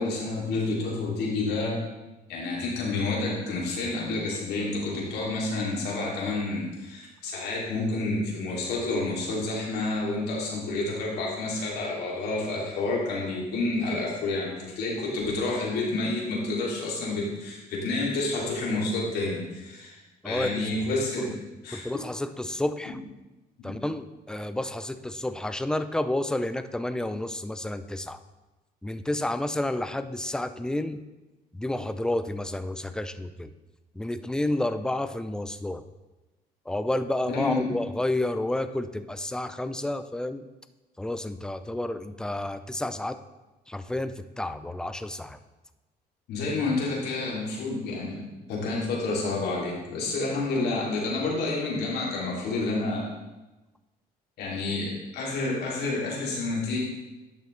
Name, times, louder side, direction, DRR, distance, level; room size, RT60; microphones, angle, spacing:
voice 1, 0.0-1.8 2.3-20.0 20.2-21.3 21.6-22.0 23.6-23.7 37.3-37.7 46.3-48.2 48.5-53.1 54.4-56.8, left 2 dB, 75° left, -4 dB, 2.9 m, -29 dB
voice 2, 20.2-20.7 21.7-23.0 23.6-28.2 28.8-31.0 31.5-33.5 33.9-35.8 36.7-40.5 41.0-43.2 43.7-45.4, left 1 dB, 5° left, 11 dB, 0.4 m, -30 dB
11.0 x 6.7 x 3.3 m, 1.1 s
cardioid pair, 110°, 17 cm